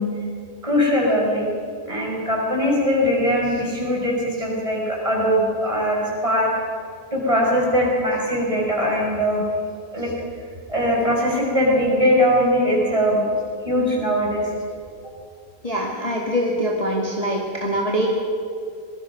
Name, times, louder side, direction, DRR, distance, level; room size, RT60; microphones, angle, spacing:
voice 1, 0.6-1.5 1.9-6.5 7.1-9.4 9.9-10.1 10.7-13.3 13.6-14.5, equal, 20° right, -3 dB, 6.4 m, -21 dB
voice 2, 15.6-18.1, equal, 20° left, -3 dB, 2.5 m, -23 dB
25.0 x 21.0 x 6.1 m, 2.3 s
omnidirectional pair, 1.8 m